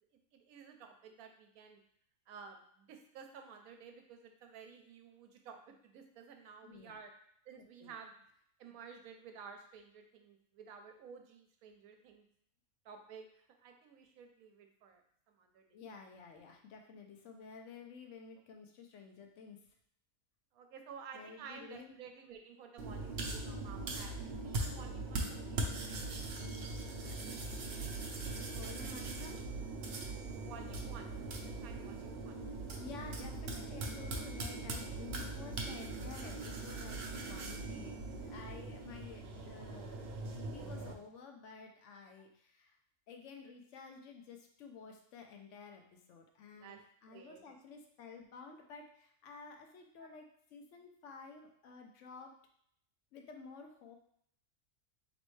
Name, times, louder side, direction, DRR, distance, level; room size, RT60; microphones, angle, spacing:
voice 1, 0.3-1.8 2.3-7.1 7.5-8.1 8.6-12.3 12.8-15.0 15.3-15.8 20.5-25.9 30.3-32.4 46.5-46.8 47.1-47.4, right 6 dB, 85° right, 5 dB, 1.1 m, -53 dB
voice 2, 6.6-7.0 7.6-8.0 15.7-19.8 21.1-22.0 28.5-29.5 32.8-42.8 43.1-52.3 53.1-54.0, left 5 dB, 65° left, 3 dB, 0.9 m, -52 dB
sound 1, 22.8-40.9, right 2 dB, 60° right, 0.7 m, -41 dB
4.2 x 3.0 x 3.1 m, 0.68 s
omnidirectional pair, 1.5 m